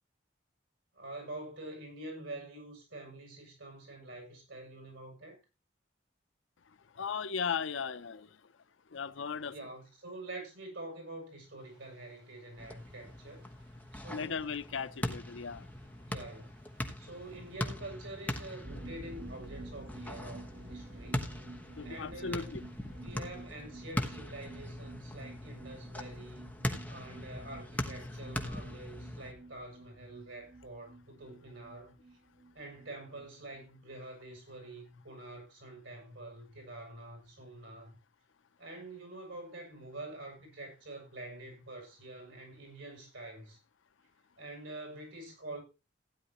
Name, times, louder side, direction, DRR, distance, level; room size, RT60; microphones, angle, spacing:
voice 1, 0.9-5.4 9.5-13.5 13.9-14.5 16.1-16.6 17.0-21.3 21.8-22.6 23.0-26.5 26.9-32.2 32.5-38.0 38.6-43.6 44.4-45.6, right 2 dB, 80° right, 7.5 m, -46 dB
voice 2, 6.9-8.4 8.9-9.6 14.1-15.7 21.7-22.6, left 6 dB, 75° left, 0.6 m, -37 dB
sound 1, 11.6-23.6, right 1 dB, 25° right, 6.8 m, -67 dB
sound 2, 12.6-29.3, left 1 dB, 10° left, 1.1 m, -41 dB
sound 3, 18.6-34.0 34.3-34.4 34.7-34.8, right 2 dB, 55° right, 7.8 m, -51 dB
16.0 x 9.8 x 2.9 m
head